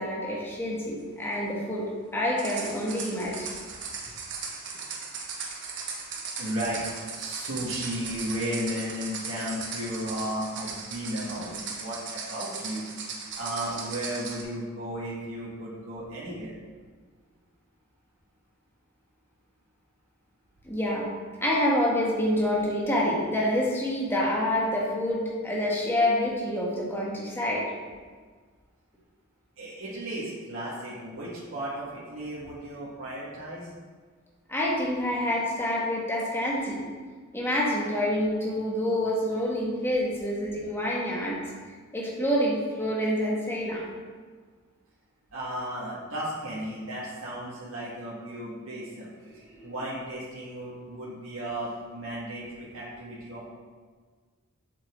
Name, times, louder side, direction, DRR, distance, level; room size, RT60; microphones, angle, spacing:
voice 1, 0.0-3.5 20.6-21.1 21.4-27.7 34.5-36.8 37.3-41.4 41.9-43.8, left 1 dB, 10° left, -4 dB, 1.7 m, -27 dB
sound 1, 2.4-14.4, right 5 dB, 60° right, 1.4 m, -38 dB
voice 2, 6.4-6.8 7.2-12.9 13.3-16.5 29.6-33.7 45.3-53.4, equal, 80° right, -8 dB, 1.8 m, -34 dB
7.8 x 7.3 x 3.7 m, 1.5 s
head